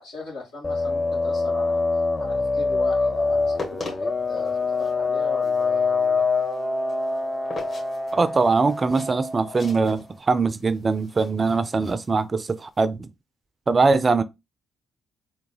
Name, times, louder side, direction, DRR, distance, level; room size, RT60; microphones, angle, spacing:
voice 1, 0.0-1.8 2.2-6.5, left 3 dB, 70° left, 1.5 m, -38 dB
sound 1, 0.6-9.9, left 3 dB, 20° left, 0.5 m, -25 dB
sound 2, 3.3-12.8, left 2 dB, 40° left, 1.9 m, -42 dB
voice 2, 8.1-13.1 13.7-14.2, right 4 dB, 35° right, 0.4 m, -22 dB
3.8 x 2.2 x 3.8 m
figure-of-eight pair, 40°, 0 cm